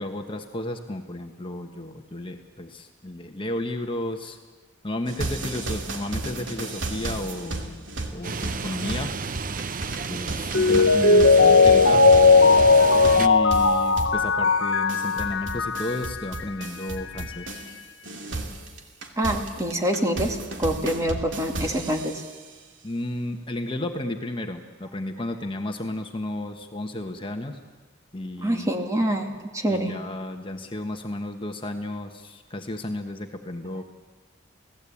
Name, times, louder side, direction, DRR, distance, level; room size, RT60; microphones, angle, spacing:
voice 1, 0.0-4.4 4.8-7.9 8.1-9.1 10.1-12.0 13.2-17.6 22.8-27.6 28.1-28.7 29.7-33.8, left 1 dB, 25° left, 4 dB, 1.3 m, -33 dB
sound 1, 5.1-17.8 18.0-22.4, right 2 dB, 70° right, 2.6 m, -34 dB
sound 2, 8.2-13.3, right 5 dB, 45° right, 0.7 m, -32 dB
Mallet percussion, 10.5-16.1 16.4-16.5, left 4 dB, 75° left, 1.1 m, -17 dB
voice 2, 19.2-22.2 28.4-30.0, right 1 dB, 15° right, 3 dB, 2.4 m, -26 dB
29.5 x 18.0 x 8.6 m, 1.4 s
head